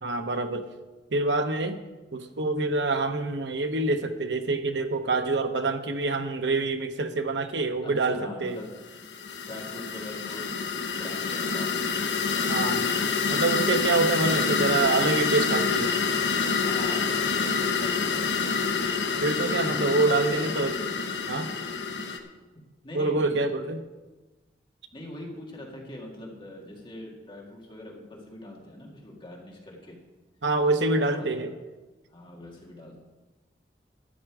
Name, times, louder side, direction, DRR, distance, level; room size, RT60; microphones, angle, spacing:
voice 1, 0.0-0.7 1.1-1.8 2.1-8.6 12.5-12.8 13.3-15.9 19.2-20.7 21.3-21.6 22.9-23.8 30.4-31.5, right 3 dB, 80° right, 7 dB, 1.0 m, -26 dB
voice 2, 7.8-8.7 9.5-12.1 14.3-14.8 16.6-18.5 20.3-20.6 21.8-22.2 22.8-23.4 24.9-30.0 30.9-31.5 32.1-33.0, left 1 dB, 30° left, -2 dB, 2.2 m, -42 dB
sound 1, 8.8-22.2, left 5 dB, 70° left, 1.2 m, -27 dB
12.5 x 9.1 x 4.9 m, 1.2 s
head